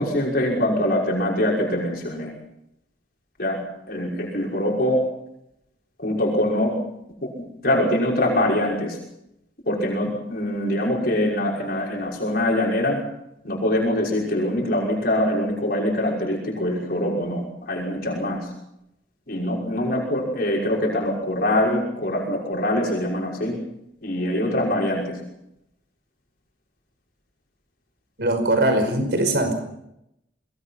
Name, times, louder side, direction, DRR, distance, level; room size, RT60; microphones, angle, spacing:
voice 1, 0.0-2.3 3.4-3.6 3.9-5.0 6.0-6.7 7.6-9.0 9.7-13.0 13.4-18.5 19.3-23.6 24.0-25.2, left 1 dB, 55° left, -2 dB, 5.9 m, -23 dB
voice 2, 28.2-29.5, right 1 dB, 65° right, 6 dB, 5.4 m, -21 dB
27.0 x 21.5 x 5.8 m, 0.81 s
head